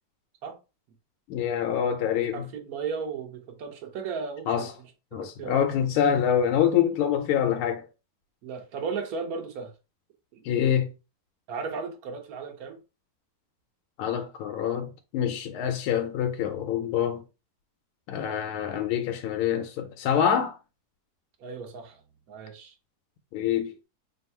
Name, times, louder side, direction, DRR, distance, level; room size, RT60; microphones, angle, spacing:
voice 1, 1.3-2.4 4.5-4.7 5.1-7.9 10.4-10.9 14.0-17.2 18.1-20.6 23.3-23.7, left 9 dB, 80° left, 1.4 m, -26 dB
voice 2, 2.3-4.7 5.2-5.6 8.4-9.7 10.3-10.4 11.5-12.8 21.4-22.0 22.3-22.7, right 5 dB, 55° right, 1.1 m, -35 dB
3.5 x 2.3 x 4.1 m
omnidirectional pair, 2.4 m